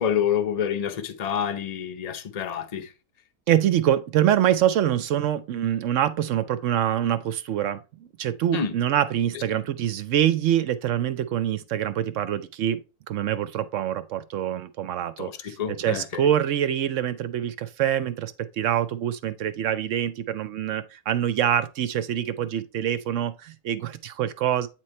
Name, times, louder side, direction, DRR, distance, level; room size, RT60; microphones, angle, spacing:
voice 1, 0.0-2.9 8.5-8.7 9.3-9.4 15.2-16.3, left 8 dB, 45° left, 0.5 m, -28 dB
voice 2, 3.5-12.8 13.1-24.7, right 11 dB, 65° right, 0.8 m, -25 dB
8.8 x 3.1 x 4.2 m
omnidirectional pair, 1.6 m